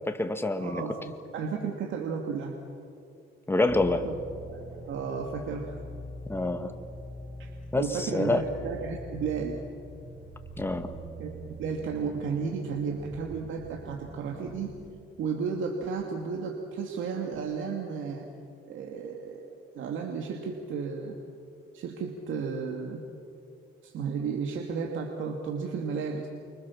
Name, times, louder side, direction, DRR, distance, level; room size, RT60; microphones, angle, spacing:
voice 1, 0.1-0.8 3.5-4.1 6.3-6.7 7.7-8.4 10.6-10.9, left 2 dB, 10° left, 7 dB, 2.2 m, -27 dB
voice 2, 0.6-1.0 1.3-2.6 4.0-4.2 4.5-4.6 4.9-5.8 7.4-9.6 11.2-11.3 11.6-14.7 15.2-18.3 18.6-21.2 21.7-23.0 23.8-26.3, right 5 dB, 80° right, 1 dB, 2.6 m, -33 dB
sound 1, 3.7-14.9, equal, 20° right, 8.0 m, -44 dB
29.5 x 25.0 x 7.4 m, 2.5 s
cardioid pair, 90°, 20 cm